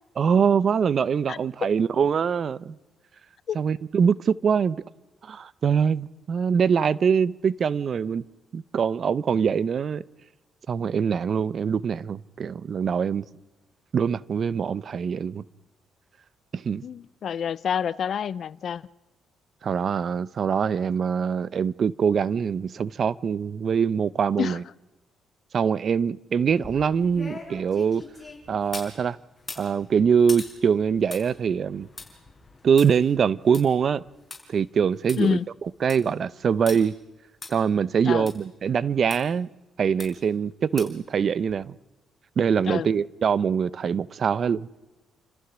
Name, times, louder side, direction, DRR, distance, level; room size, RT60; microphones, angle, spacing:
voice 1, 0.2-2.8 3.5-4.8 5.2-8.2 8.5-10.0 10.7-13.2 13.9-15.4 16.5-16.8 19.6-24.6 25.5-28.0 28.5-29.2 29.6-31.9 32.6-34.0 34.5-35.4 35.8-36.9 37.5-39.5 39.8-41.8 42.4-44.7, right 7 dB, 50° right, 0.7 m, -23 dB
voice 2, 16.8-18.8 24.4-24.6 35.2-35.5 38.0-38.3 42.6-42.9, left 8 dB, 60° left, 0.6 m, -28 dB
sound 1, 26.5-28.9 29.4-34.4 34.8-34.9 35.1-35.2 35.6-36.1 36.7-36.8 37.4-37.5 38.3-38.4 39.1-39.2 40.0-40.3 40.8-41.1 41.5-41.6, left 3 dB, 20° left, 5.7 m, -41 dB
29.0 x 14.5 x 6.2 m
cardioid pair, 90°, 0 cm